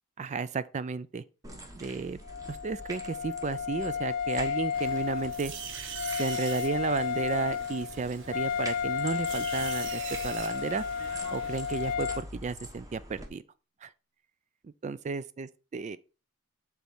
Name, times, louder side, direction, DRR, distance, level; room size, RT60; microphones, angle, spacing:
voice 1, 0.2-1.2 1.7-2.2 2.5-5.5 6.2-10.8 11.3-13.4 13.8-13.9 14.6-16.0, right 5 dB, 35° right, 0.3 m, -33 dB
sound 1, 1.4-13.3, equal, 15° right, 1.2 m, -46 dB
Wind instrument woodwind instrument, 2.2-12.2, left 7 dB, 45° left, 0.6 m, -33 dB
sound 2, 4.7-11.9, right 7 dB, 60° right, 0.9 m, -43 dB
7.4 x 4.2 x 5.5 m
head